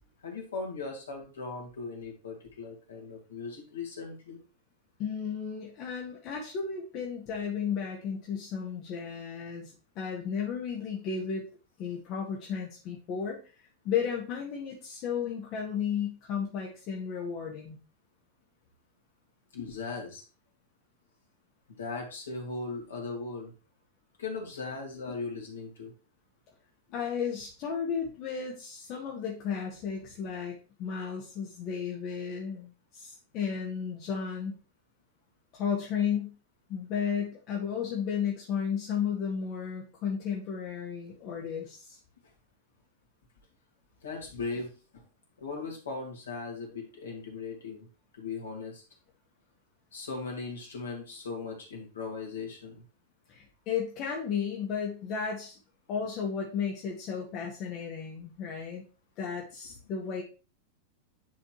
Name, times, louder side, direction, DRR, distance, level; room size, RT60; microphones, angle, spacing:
voice 1, 0.2-4.4 19.5-20.2 21.7-23.5 24.2-25.9 44.0-45.0 45.4-47.9 48.1-48.8 49.9-52.8, left 4 dB, 65° left, -1 dB, 2.7 m, -38 dB
voice 2, 5.0-11.4 11.8-17.8 26.9-34.6 35.5-36.3 36.7-42.0 53.3-55.6 55.9-58.8 59.2-60.2, left 7 dB, 40° left, -1 dB, 1.7 m, -34 dB
10.0 x 4.2 x 3.1 m, 0.34 s
figure-of-eight pair, 90°, 0 cm